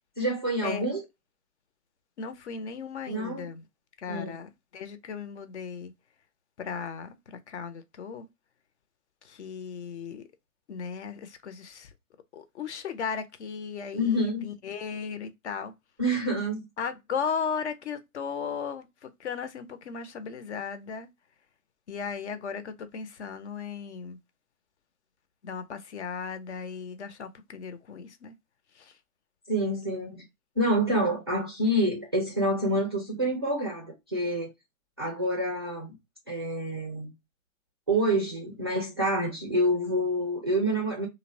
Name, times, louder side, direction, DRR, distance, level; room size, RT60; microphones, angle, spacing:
voice 1, 0.2-1.0 3.1-3.5 4.1-4.3 13.9-14.5 16.0-16.6 29.5-30.2 30.6-34.5 35.0-35.9 36.3-37.1 37.9-41.1, right 1 dB, 20° right, 0.3 m, -27 dB
voice 2, 2.2-3.7 4.0-5.9 6.6-8.3 9.2-10.3 10.7-11.9 12.3-15.7 16.8-21.1 21.9-24.2 25.4-28.3 28.7-29.0, left 6 dB, 50° left, 0.5 m, -36 dB
2.7 x 2.0 x 2.5 m
hypercardioid pair, 135°, 44 cm